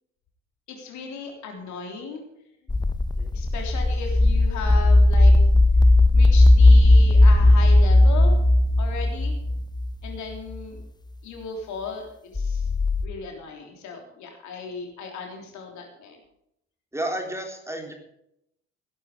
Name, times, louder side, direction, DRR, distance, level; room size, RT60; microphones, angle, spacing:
voice 1, 0.7-2.2 3.3-5.3 6.1-8.4 8.8-9.4 10.0-10.8 11.2-12.7 13.0-16.2, left 5 dB, 60° left, 2 dB, 3.4 m, -36 dB
sound 1, 2.7-10.2 12.3-13.1, left 2 dB, 15° left, 1.1 m, -16 dB
voice 2, 16.9-17.9, right 1 dB, 10° right, 3 dB, 3.6 m, -31 dB
15.5 x 11.5 x 5.2 m, 0.76 s
figure-of-eight pair, 50°, 33 cm